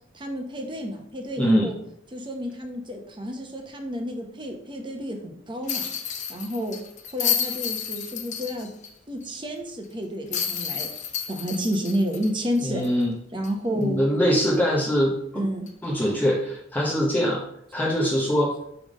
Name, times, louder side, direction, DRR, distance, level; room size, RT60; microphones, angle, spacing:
voice 1, 0.1-1.7 2.1-5.9 6.3-6.8 7.1-8.7 9.1-10.9 11.3-12.8 13.3-14.0 15.3-15.7, equal, 25° right, 3 dB, 0.9 m, -30 dB
voice 2, 1.4-1.7 12.6-13.1 13.7-15.4 15.8-17.4 17.7-18.5, equal, 10° left, -4 dB, 0.8 m, -23 dB
sound 1, 5.7-8.9 9.2-9.3 10.3-13.0 13.4-13.5 15.7-15.9, left 8 dB, 40° left, 0.7 m, -30 dB
5.6 x 3.4 x 5.2 m, 0.70 s
head